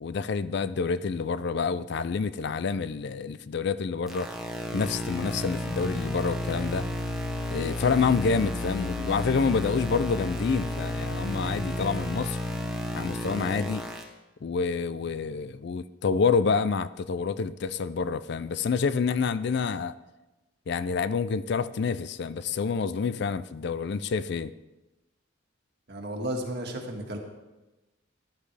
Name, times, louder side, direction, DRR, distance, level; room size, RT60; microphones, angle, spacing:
voice 1, 0.0-4.3 4.7-6.9 7.5-12.4 12.9-13.9 14.4-19.9 20.7-24.5, left 5 dB, 55° left, 15 dB, 0.4 m, -28 dB
sound 1, 4.1-14.0, left 1 dB, ahead, 1.2 m, -32 dB
voice 2, 25.9-27.2, right 1 dB, 55° right, 2 dB, 1.8 m, -33 dB
15.0 x 11.5 x 3.4 m, 1.1 s
head